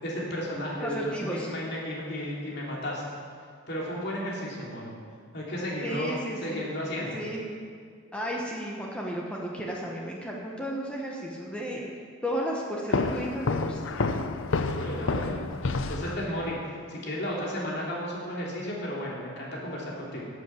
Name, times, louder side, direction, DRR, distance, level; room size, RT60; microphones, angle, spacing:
voice 1, 0.0-3.0 3.7-4.9 5.3-7.2 14.7-15.4 15.9-16.6 16.9-20.2, equal, 50° left, -4 dB, 2.9 m, -33 dB
voice 2, 0.7-1.5 5.8-6.6 6.9-7.5 8.1-11.9 12.2-13.8, equal, 5° left, -2 dB, 1.1 m, -33 dB
sound 1, 12.9-16.6, left 3 dB, 65° left, 0.6 m, -29 dB
11.0 x 8.1 x 7.0 m, 2.1 s
head